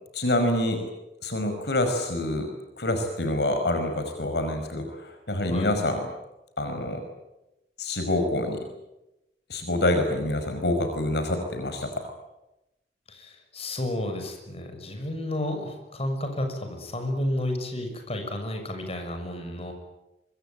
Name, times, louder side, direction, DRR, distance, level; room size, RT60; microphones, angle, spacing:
voice 1, 0.1-0.8 1.2-6.1 6.6-7.0 7.8-8.7 9.5-12.1, left 1 dB, 65° left, 6 dB, 5.3 m, -26 dB
voice 2, 13.1-19.7, left 1 dB, 35° left, 5 dB, 6.5 m, -31 dB
25.0 x 24.5 x 9.0 m, 0.93 s
head